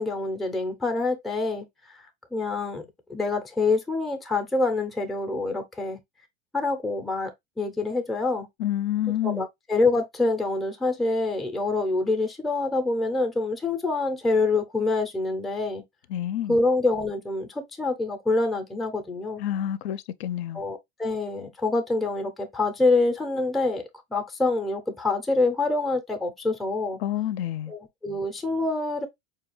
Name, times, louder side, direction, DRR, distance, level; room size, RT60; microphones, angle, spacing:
voice 1, 0.0-2.0 2.3-6.0 6.5-8.5 9.2-15.8 16.5-19.4 20.5-27.0 27.7-29.1, left 3 dB, ahead, 0.4 m, -26 dB
voice 2, 8.6-9.5 16.1-16.6 19.4-20.6 27.0-27.7, left 12 dB, 65° left, 0.5 m, -28 dB
4.7 x 2.3 x 2.9 m
supercardioid pair, 140°, 34 cm